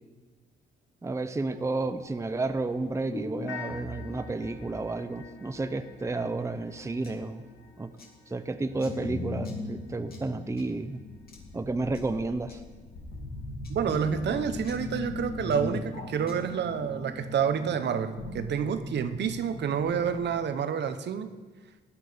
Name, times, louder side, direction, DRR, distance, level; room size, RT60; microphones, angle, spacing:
voice 1, 1.0-7.4 7.8-7.9 8.3-11.0 11.5-12.6, right 3 dB, 15° right, 9 dB, 0.7 m, -31 dB
sound 1, 1.5-8.0 8.6-20.4, left 2 dB, 70° left, 2.8 m, -40 dB
sound 2, 7.0-7.1 8.0-8.1 8.8-8.9 9.4-9.6 10.1-10.2 10.6-10.7 11.3-11.4 11.9-12.0 12.5-12.6 13.6-14.0 14.6-14.8 15.5-15.6 16.3-16.4, left 4 dB, 50° left, 2.9 m, -52 dB
voice 2, 13.7-21.4, right 7 dB, 60° right, 10 dB, 1.0 m, -29 dB
16.5 x 10.0 x 5.1 m, 1.3 s
cardioid pair, 90°, 20 cm